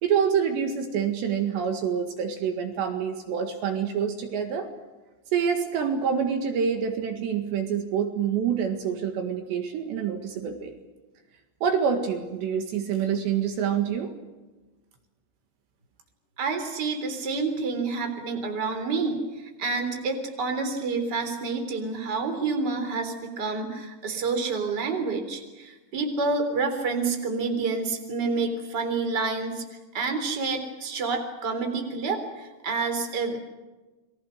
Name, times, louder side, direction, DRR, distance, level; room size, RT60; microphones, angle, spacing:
voice 1, 0.0-4.7 5.3-10.7 11.6-14.1, right 7 dB, 70° right, 5 dB, 3.9 m, -26 dB
voice 2, 16.4-29.6 29.9-33.4, right 4 dB, 25° right, 6 dB, 3.6 m, -28 dB
29.5 x 23.0 x 6.5 m, 1.2 s
omnidirectional pair, 5.4 m